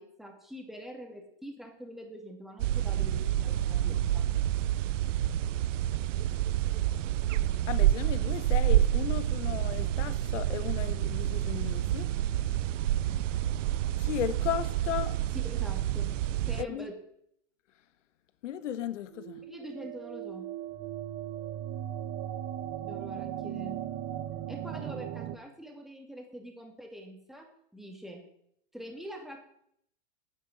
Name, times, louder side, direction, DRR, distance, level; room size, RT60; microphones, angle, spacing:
voice 1, 0.0-4.3 15.4-16.2 16.5-16.9 19.4-20.5 22.8-23.8 24.5-28.2 28.7-29.4, equal, ahead, 2.4 m, -44 dB
sound 1, 2.6-16.6, right 12 dB, 80° right, 0.6 m, -28 dB
voice 2, 7.7-12.1 14.0-15.2 16.6-16.9 18.4-19.4, left 10 dB, 75° left, 1.5 m, -35 dB
sound 2, 19.1-25.4, right 11 dB, 35° right, 1.0 m, -38 dB
9.6 x 9.2 x 9.8 m
hypercardioid pair, 140°, 37 cm